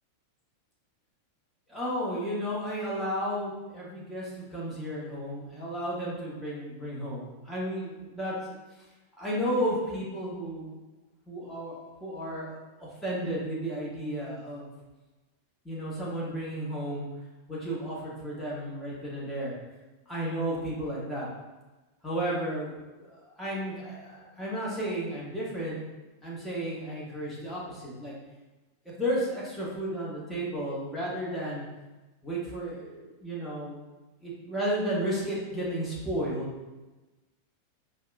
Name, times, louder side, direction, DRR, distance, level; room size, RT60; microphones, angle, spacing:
voice 1, 1.7-8.3 9.2-10.7 11.3-14.7 15.6-17.1 17.5-19.5 20.1-21.3 22.0-25.8 26.2-28.1 28.8-31.6 32.2-33.8 34.2-36.5, equal, 5° left, -7 dB, 1.2 m, -33 dB
4.8 x 2.2 x 2.6 m, 1.1 s
figure-of-eight pair, 90°, 0 cm